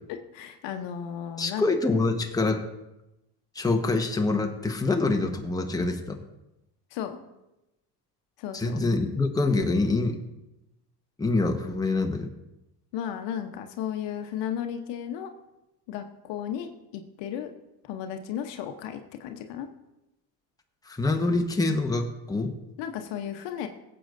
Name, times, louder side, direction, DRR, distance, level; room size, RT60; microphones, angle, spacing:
voice 1, 0.1-1.7 6.9-7.2 8.4-8.8 12.9-15.3 15.9-17.5 17.8-19.7 22.8-23.7, left 9 dB, 60° left, 6 dB, 1.0 m, -34 dB
voice 2, 1.4-2.6 3.5-6.2 8.5-10.2 11.2-12.3 20.8-22.5, left 3 dB, 10° left, 4 dB, 1.1 m, -25 dB
17.0 x 7.8 x 2.6 m, 0.93 s
hypercardioid pair, 70°, 48 cm